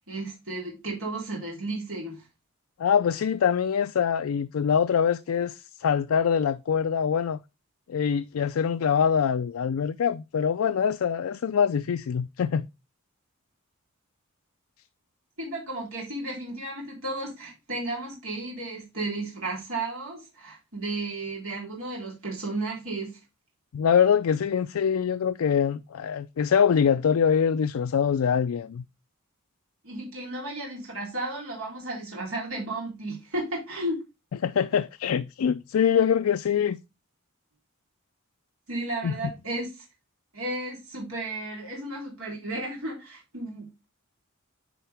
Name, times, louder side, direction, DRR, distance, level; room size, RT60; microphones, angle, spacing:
voice 1, 0.1-2.2 15.4-23.2 29.8-34.0 35.9-36.0 38.7-39.9 40.3-43.7, right 2 dB, 75° right, 3.5 m, -34 dB
voice 2, 2.8-7.4 7.9-12.7 23.7-28.8 34.4-36.8 39.0-39.1, left 7 dB, 75° left, 0.4 m, -24 dB
10.0 x 4.6 x 3.4 m
head